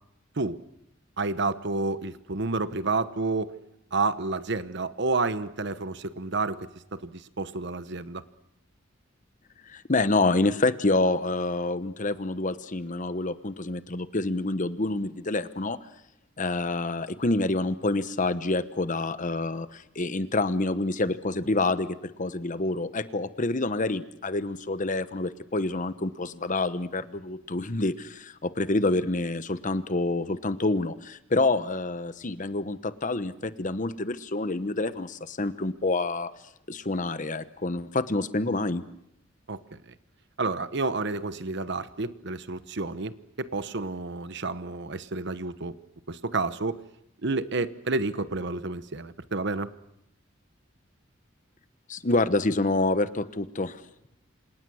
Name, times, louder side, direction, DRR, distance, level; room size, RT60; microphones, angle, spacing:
voice 1, 1.2-3.5 3.9-8.2 39.5-39.8 40.4-45.8 46.1-46.8 47.2-49.7, right 3 dB, 60° right, 13 dB, 1.1 m, -30 dB
voice 2, 9.7-15.8 16.4-36.3 36.7-38.8 51.9-53.8, left 2 dB, 40° left, 12 dB, 1.1 m, -27 dB
28.0 x 27.0 x 6.4 m, 0.81 s
head